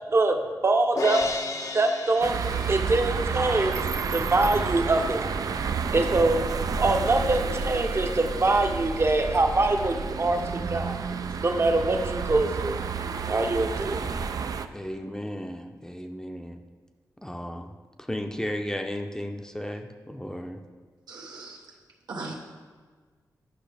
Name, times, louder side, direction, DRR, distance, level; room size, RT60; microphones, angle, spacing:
voice 1, 0.6-1.2 1.7-5.4 5.9-6.4 6.8-10.4 10.7-11.0 11.4-12.8 13.3-14.2, right 2 dB, 40° right, 4 dB, 0.8 m, -24 dB
Crash cymbal, 1.0-3.2, left 3 dB, 55° left, 0.6 m, -33 dB
sound 1, 2.2-14.7, right 5 dB, 65° right, 0.4 m, -30 dB
voice 2, 14.7-16.6 17.2-17.7 18.1-20.6, equal, 10° left, 4 dB, 0.6 m, -34 dB
voice 3, 21.1-21.7 22.1-22.4, right 3 dB, 90° right, -2 dB, 1.1 m, -38 dB
10.0 x 5.6 x 3.4 m, 1.5 s
cardioid pair, 60°, 7 cm